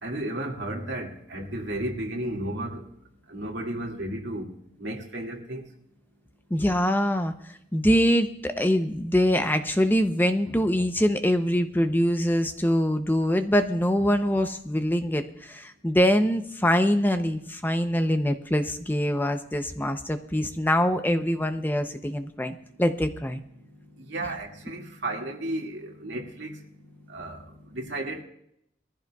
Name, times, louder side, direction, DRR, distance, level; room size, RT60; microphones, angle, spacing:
voice 1, 0.0-2.8 3.3-4.5 4.8-5.7 24.0-26.6 27.1-28.2, right 1 dB, 85° right, 2.1 m, -33 dB
voice 2, 6.5-23.4, equal, 10° left, 0.6 m, -24 dB
22.0 x 14.5 x 2.3 m
head